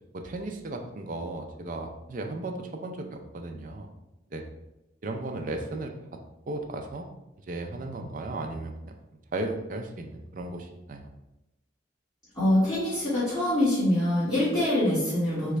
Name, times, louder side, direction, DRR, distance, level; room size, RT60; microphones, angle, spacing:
voice 1, 0.1-3.9 4.3-4.4 5.0-6.2 6.5-7.1 7.5-9.0 9.3-11.1, right 2 dB, 45° right, 4 dB, 0.4 m, -35 dB
voice 2, 12.3-15.6, left 1 dB, 20° left, -15 dB, 1.4 m, -24 dB
4.0 x 2.3 x 3.1 m, 0.92 s
head